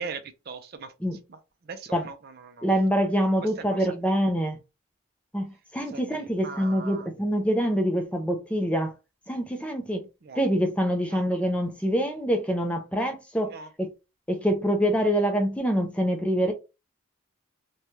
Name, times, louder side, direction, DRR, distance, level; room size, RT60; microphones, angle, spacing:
voice 1, 0.0-0.9 1.3-2.7 3.4-3.8 5.9-7.1 10.2-10.4 11.1-11.3 13.5-13.7, right 5 dB, 45° right, 0.4 m, -40 dB
voice 2, 2.6-4.6 5.3-8.9 9.3-10.1 10.4-13.5 13.8-13.9 14.3-16.5, equal, 5° left, 0.5 m, -25 dB
3.2 x 2.2 x 2.7 m
head